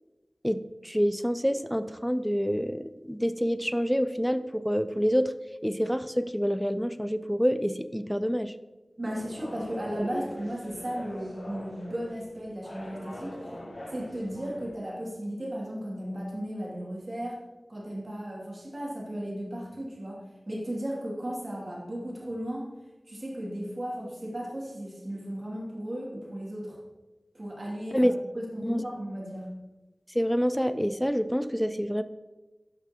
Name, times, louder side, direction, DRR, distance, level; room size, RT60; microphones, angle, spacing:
voice 1, 0.4-5.3 5.6-8.5 27.9-28.1 28.6-28.8 30.1-32.0, equal, ahead, 12 dB, 0.4 m, -27 dB
voice 2, 9.0-13.6 13.9-17.4 17.7-22.7 23.1-26.8 27.3-29.5, equal, 50° right, -4 dB, 2.7 m, -35 dB
sound 1, 9.1-14.7, left 1 dB, 80° left, 2.4 m, -42 dB
12.0 x 5.7 x 3.0 m, 1.1 s
wide cardioid pair, 50°, 0 cm